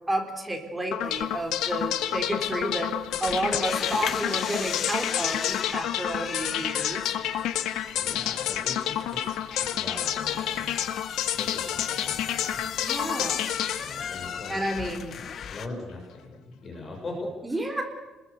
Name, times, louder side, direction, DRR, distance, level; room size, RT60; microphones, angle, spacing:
voice 1, 0.1-2.9 3.2-7.2 12.8-13.5 14.5-15.1 17.4-17.8, right 1 dB, 10° right, 3 dB, 3.8 m, -31 dB
sound 1, 0.9-15.0, left 11 dB, 80° left, 2.0 m, -29 dB
sound 2, 1.0-15.7, left 7 dB, 40° left, 1.1 m, -37 dB
voice 2, 7.9-10.7 11.3-12.6 13.8-14.6 15.5-17.6, left 2 dB, 25° left, 1 dB, 6.3 m, -40 dB
29.5 x 21.5 x 8.3 m, 1.1 s
cardioid pair, 175°, 0 cm